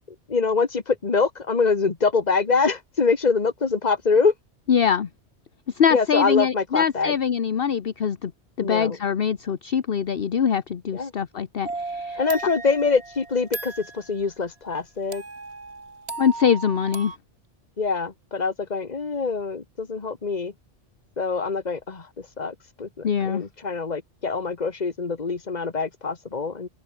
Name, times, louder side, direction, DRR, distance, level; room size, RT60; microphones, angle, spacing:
voice 1, 0.3-4.3 5.9-7.1 8.6-9.0 10.9-11.1 12.2-15.2 17.8-20.5 21.2-26.7, left 4 dB, 40° left, 1.6 m, -24 dB
voice 2, 4.7-5.1 5.7-8.3 8.6-12.2 16.2-17.1 23.0-23.4, left 7 dB, 55° left, 1.2 m, -23 dB
sound 1, 11.6-14.1 15.1-17.2, right 3 dB, 70° right, 3.0 m, -36 dB
open air
omnidirectional pair, 1.2 m